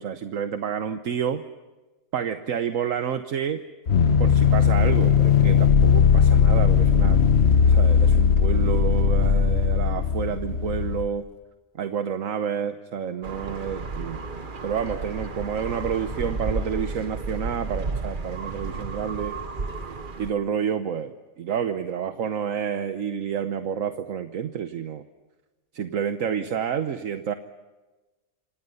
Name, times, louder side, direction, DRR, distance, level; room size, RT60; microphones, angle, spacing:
voice 1, 0.0-1.4 2.1-3.6 4.2-7.2 7.6-11.3 11.8-14.2 14.6-19.4 20.2-25.0 25.7-27.3, right 7 dB, 75° right, 8 dB, 1.4 m, -29 dB
sound 1, 3.9-11.1, left 7 dB, 55° left, 1.4 m, -18 dB
sound 2, 13.2-20.3, right 3 dB, 40° right, 1.4 m, -32 dB
27.5 x 26.0 x 5.5 m, 1.2 s
omnidirectional pair, 1.4 m